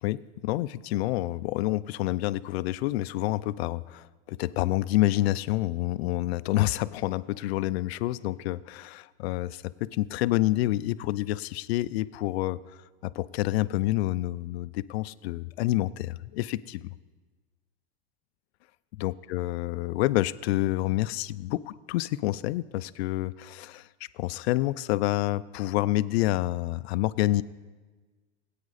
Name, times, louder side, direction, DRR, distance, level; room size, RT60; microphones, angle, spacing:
voice 1, 0.0-12.6 13.0-16.9 19.0-23.9 24.1-27.4, left 16 dB, 65° left, 17 dB, 0.5 m, -28 dB
18.5 x 8.7 x 4.1 m, 1.3 s
supercardioid pair, 130°, 34 cm